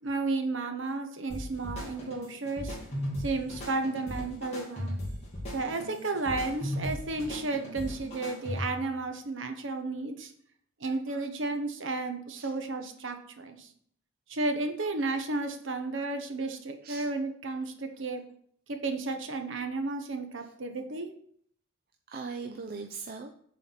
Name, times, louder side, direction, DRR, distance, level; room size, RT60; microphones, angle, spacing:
voice 1, 0.0-2.8 3.2-5.0 5.5-10.3 10.8-13.7 14.3-18.2 18.7-21.1, right 3 dB, 60° right, 6 dB, 1.0 m, -33 dB
sound 1, 1.3-8.9, equal, 30° left, 2.8 m, -37 dB
voice 2, 22.1-23.3, right 4 dB, 45° right, 3 dB, 0.5 m, -40 dB
7.2 x 4.2 x 5.7 m, 0.63 s
head